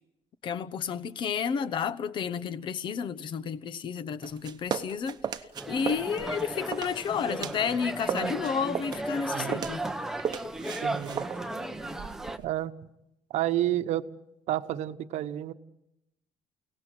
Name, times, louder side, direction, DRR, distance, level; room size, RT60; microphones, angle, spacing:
voice 1, 0.4-9.9, left 7 dB, 45° left, 1.0 m, -31 dB
sound 1, 4.2-7.7 8.0-12.5, right 8 dB, 35° right, 1.0 m, -36 dB
sound 2, 5.5-12.4, right 2 dB, 5° right, 0.9 m, -35 dB
voice 2, 9.3-9.7 10.8-11.3 12.4-12.7 13.3-14.0 14.5-15.5, right 13 dB, 70° right, 1.1 m, -30 dB
29.5 x 18.0 x 9.0 m
cardioid pair, 165°, 12 cm